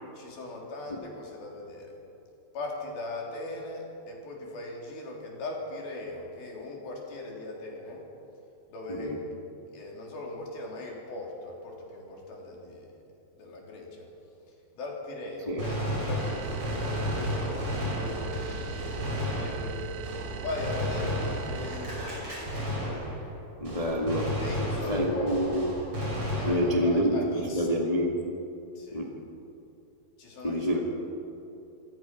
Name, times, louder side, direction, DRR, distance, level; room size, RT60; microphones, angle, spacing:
voice 1, 0.1-2.0 2.5-8.1 8.7-9.3 9.7-13.0 13.4-14.1 14.5-20.1 20.4-22.8 24.4-25.6 26.4-27.7 28.8-29.1 30.2-30.8, left 2 dB, 65° left, -1 dB, 5.2 m, -39 dB
Gunshot gunfire, 15.6-23.4 23.6-27.0, equal, 35° right, 6.9 m, -33 dB
sound 1, 16.2-22.3, right 10 dB, 80° right, 2.3 m, -41 dB
voice 2, 23.6-24.3 24.9-25.7 26.4-28.2 28.9-29.1 30.4-30.8, equal, 40° left, 0 dB, 0.5 m, -27 dB
27.0 x 17.0 x 6.0 m, 2.8 s
omnidirectional pair, 4.7 m